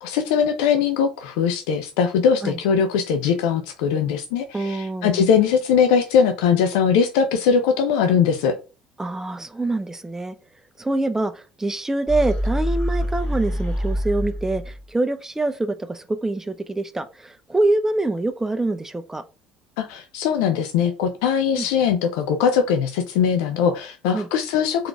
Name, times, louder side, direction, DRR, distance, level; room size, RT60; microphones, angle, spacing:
voice 1, 0.0-8.5 19.8-24.9, left 7 dB, 65° left, 7 dB, 0.5 m, -20 dB
voice 2, 4.5-5.2 9.0-10.3 10.8-19.2 21.5-21.7 24.1-24.3, right 2 dB, 10° right, 10 dB, 0.6 m, -25 dB
sound 1, 12.1-14.8, equal, 30° left, 2.3 m, -25 dB
4.5 x 3.9 x 2.3 m, 0.33 s
figure-of-eight pair, 60°, 4 cm